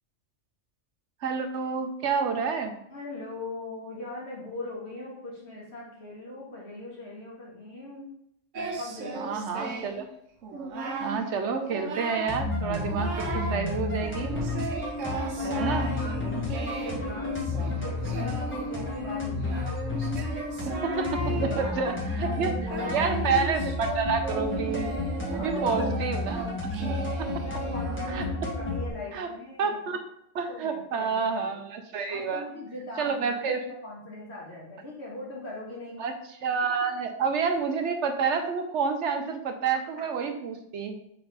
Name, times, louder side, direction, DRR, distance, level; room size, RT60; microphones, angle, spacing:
voice 1, 1.2-2.7 9.2-10.1 11.0-14.3 15.4-15.9 20.7-22.5 22.9-24.9 25.4-26.4 26.9-27.3 28.1-28.3 29.1-29.3 29.6-30.0 30.3-32.4 33.0-33.6 36.0-36.1 36.4-41.0, right 5 dB, 70° right, 6 dB, 1.0 m, -29 dB
voice 2, 2.9-8.1 8.5-9.7 15.0-19.8 20.8-23.3 25.3-25.9 27.4-29.8 30.5-31.5 32.1-36.0, left 2 dB, 60° left, -4 dB, 2.0 m, -40 dB
Singing, 8.5-10.0 10.4-11.2 11.6-12.4 12.7-13.6 14.0-28.5, right 4 dB, 85° right, 1.2 m, -36 dB
sound 1, 12.3-28.9, left 3 dB, 10° left, 1.4 m, -31 dB
4.3 x 4.1 x 5.4 m, 0.76 s
omnidirectional pair, 1.3 m